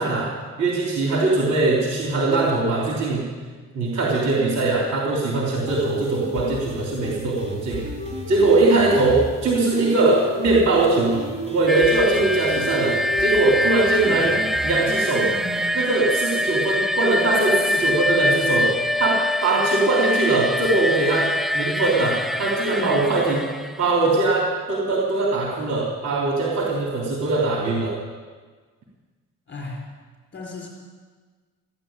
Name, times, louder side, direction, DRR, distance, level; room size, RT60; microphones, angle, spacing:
voice 1, 0.0-3.2 3.7-7.8 8.3-11.2 11.5-14.3 14.6-15.3 15.7-18.7 19.0-23.4 23.8-28.0, right 2 dB, 60° right, -3 dB, 3.5 m, -21 dB
sound 1, 5.6-15.7, right 1 dB, 20° right, 3.4 m, -33 dB
voice 2, 7.0-7.4 14.0-14.4 22.8-23.1 29.5-29.8 30.3-30.7, left 3 dB, 40° left, -1 dB, 4.5 m, -34 dB
sound 2, 11.7-24.1, left 1 dB, ahead, 0.4 m, -24 dB
15.5 x 10.5 x 8.9 m, 1.5 s
cardioid pair, 90°, 30 cm